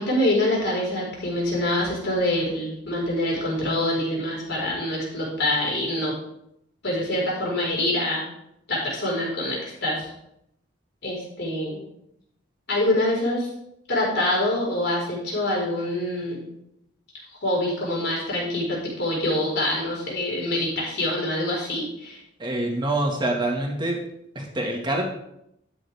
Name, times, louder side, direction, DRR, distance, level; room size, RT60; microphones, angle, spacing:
voice 1, 0.0-6.1 6.8-8.2 8.7-10.1 11.0-11.8 12.7-13.5 13.9-16.5 17.4-22.2, left 1 dB, 65° left, -4 dB, 4.9 m, -25 dB
voice 2, 22.4-24.0 24.4-25.1, right 1 dB, 25° right, 0 dB, 1.9 m, -25 dB
12.5 x 9.1 x 3.6 m, 0.78 s
head